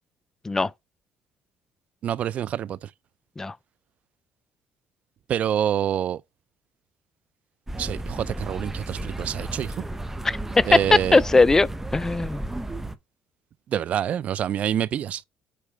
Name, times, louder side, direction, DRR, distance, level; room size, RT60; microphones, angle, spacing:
voice 1, 2.0-2.9 5.3-6.2 7.8-9.8 10.7-11.2 13.7-15.2, right 10 dB, 55° right, 0.4 m, -26 dB
sound 1, 7.7-13.0, right 1 dB, 10° right, 0.8 m, -33 dB
voice 2, 10.2-12.4, left 3 dB, 20° left, 0.4 m, -20 dB
8.4 x 3.1 x 4.9 m
cardioid pair, 90°, 3 cm